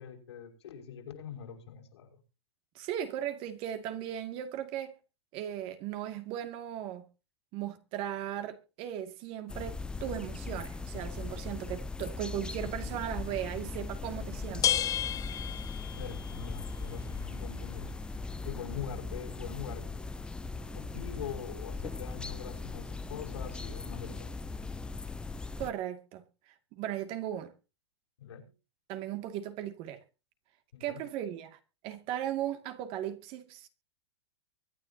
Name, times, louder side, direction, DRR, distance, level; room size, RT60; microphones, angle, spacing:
voice 1, 0.0-2.2 16.0-17.9 18.4-19.9 20.7-24.4 28.2-28.5 30.7-31.0, left 8 dB, 80° left, 6.0 m, -43 dB
voice 2, 2.7-5.0 5.3-7.0 7.5-14.8 25.6-26.2 26.7-27.5 28.9-30.0 30.8-33.7, right 11 dB, 40° right, 2.3 m, -37 dB
sound 1, 9.5-25.7, left 3 dB, 5° left, 0.6 m, -39 dB
sound 2, 13.7-25.1, left 10 dB, 25° left, 2.9 m, -39 dB
24.0 x 10.0 x 2.9 m
hypercardioid pair, 135°, 14 cm